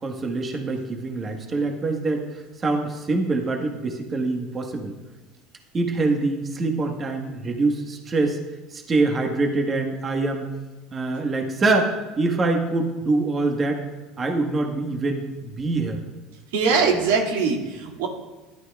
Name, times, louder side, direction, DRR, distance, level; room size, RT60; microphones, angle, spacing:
voice 1, 0.0-4.9 5.7-8.4 8.7-10.5 10.9-13.8 14.2-16.0, right 3 dB, 30° right, 2 dB, 1.3 m, -24 dB
voice 2, 16.5-18.1, right 5 dB, 90° right, 0 dB, 2.1 m, -22 dB
12.5 x 11.5 x 2.3 m, 1.2 s
supercardioid pair, 105°, 0 cm